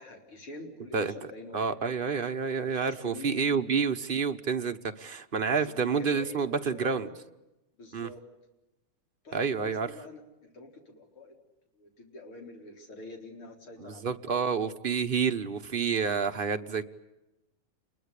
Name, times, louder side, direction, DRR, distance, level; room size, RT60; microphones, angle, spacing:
voice 1, 0.0-1.8 2.5-3.7 5.5-7.1 7.8-8.2 9.2-11.4 11.8-14.7, left 2 dB, 75° left, 2 dB, 4.9 m, -46 dB
voice 2, 1.5-7.1 7.9-8.1 9.3-9.9 13.8-16.8, right 6 dB, 40° right, 6 dB, 0.8 m, -29 dB
29.5 x 21.5 x 8.3 m, 0.94 s
omnidirectional pair, 2.4 m